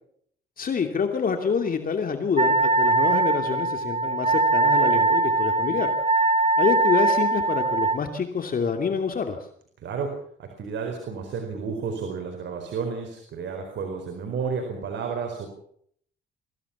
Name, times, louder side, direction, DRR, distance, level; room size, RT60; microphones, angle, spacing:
voice 1, 0.6-5.9 6.6-9.4, left 6 dB, 45° left, 5 dB, 2.5 m, -27 dB
Wind instrument woodwind instrument, 2.4-8.0, right 3 dB, 35° right, 2.4 m, -21 dB
voice 2, 9.8-10.1 10.4-15.5, right 5 dB, 65° right, 4 dB, 4.6 m, -31 dB
24.0 x 16.0 x 7.2 m, 0.65 s
cardioid pair, 90°, 20 cm